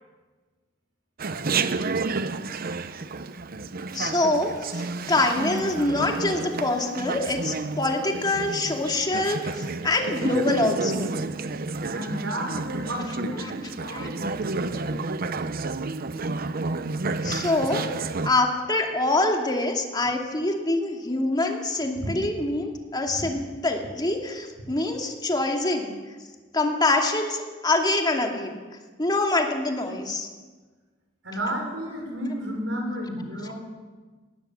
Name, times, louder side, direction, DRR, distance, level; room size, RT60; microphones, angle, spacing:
Chatter, 1.2-18.3, right 3 dB, 50° right, 0.8 m, -30 dB
voice 1, 3.9-4.8 5.1-9.5 9.8-11.1 13.4-13.5 13.9-14.1 14.7-14.8 17.2-17.8 18.2-25.9 26.5-28.6 29.0-30.3, left 2 dB, 25° left, 2 dB, 2.6 m, -25 dB
voice 2, 11.9-14.4 21.4-21.5 22.0-22.1 23.2-23.3 31.2-33.5, equal, 90° right, 1 dB, 6.4 m, -32 dB
20.5 x 17.5 x 7.7 m, 1.4 s
head